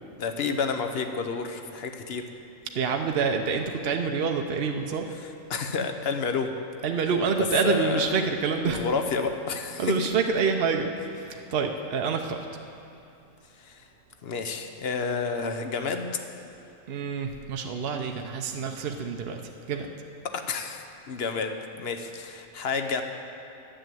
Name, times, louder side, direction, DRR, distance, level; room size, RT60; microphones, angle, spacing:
voice 1, 0.2-2.2 5.5-6.6 7.6-8.3 8.6-10.1 13.6-13.8 14.2-16.1 20.3-23.0, left 5 dB, 50° left, 6 dB, 0.9 m, -30 dB
voice 2, 2.7-5.1 6.8-8.8 9.8-10.9 11.3-12.5 16.9-19.4 19.7-19.9, right 5 dB, 55° right, 3 dB, 0.8 m, -27 dB
10.5 x 9.3 x 7.7 m, 2.7 s
omnidirectional pair, 1.5 m